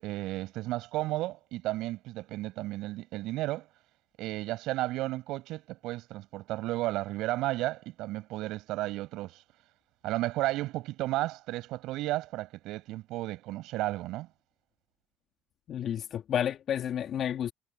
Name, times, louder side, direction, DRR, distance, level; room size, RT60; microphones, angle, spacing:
voice 1, 0.0-3.7 4.2-9.4 10.0-14.3, right 17 dB, 70° right, 7.6 m, -33 dB
voice 2, 15.7-17.5, left 9 dB, 50° left, 2.6 m, -31 dB
supercardioid pair, 90°, 0 cm